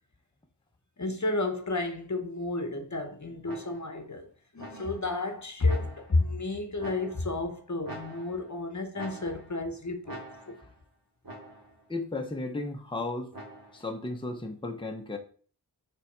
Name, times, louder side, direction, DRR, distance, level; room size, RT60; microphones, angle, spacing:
voice 1, 1.0-4.3 4.5-10.6, left 2 dB, 40° left, 1.0 m, -31 dB
sound 1, 3.4-4.0 4.6-5.2 5.6-6.3 6.8-7.4 7.8-8.6 8.9-9.7 10.0-10.8 11.2-11.8 13.3-13.9, right 1 dB, 55° right, 2.1 m, -45 dB
voice 2, 11.9-13.3 13.7-15.2, left 2 dB, 10° left, 0.8 m, -34 dB
6.7 x 3.5 x 4.6 m
wide cardioid pair, 65°, 42 cm